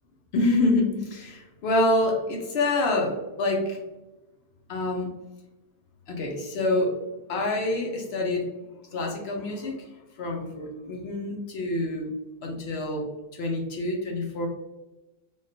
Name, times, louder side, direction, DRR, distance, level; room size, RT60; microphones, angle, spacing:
voice 1, 0.3-3.8 4.7-5.1 6.1-7.0 7.3-8.5 8.9-9.9 10.2-12.1 12.4-13.1 13.3-14.5, left 2 dB, 60° left, 1 dB, 0.7 m, -26 dB
3.5 x 2.3 x 2.6 m, 1.0 s
omnidirectional pair, 1.6 m